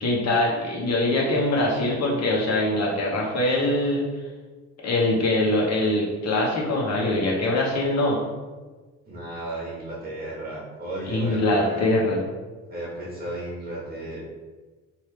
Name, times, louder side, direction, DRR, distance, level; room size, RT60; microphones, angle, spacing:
voice 1, 0.0-4.0 4.8-8.2 11.1-12.2, left 1 dB, 60° left, -3 dB, 1.0 m, -23 dB
voice 2, 9.0-11.9 12.7-14.2, right 1 dB, 35° right, -7 dB, 1.2 m, -34 dB
3.2 x 2.7 x 3.2 m, 1.3 s
cardioid pair, 90°, 30 cm